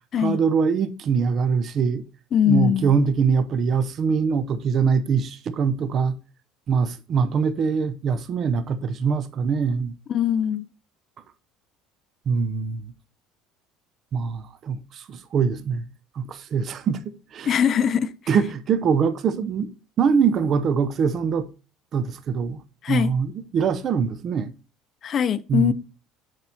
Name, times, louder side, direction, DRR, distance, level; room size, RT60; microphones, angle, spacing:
voice 1, 0.2-2.0 2.5-6.2 6.7-9.9 12.3-12.8 14.1-15.9 16.1-17.5 18.3-19.7 20.0-21.5 21.9-24.5 25.5-25.7, right 6 dB, 40° right, 0.7 m, -23 dB
voice 2, 2.3-2.9 10.1-10.6 17.5-18.1 22.8-23.1 25.0-25.7, left 9 dB, 35° left, 0.5 m, -21 dB
7.7 x 4.5 x 4.2 m
cardioid pair, 140°, 0 cm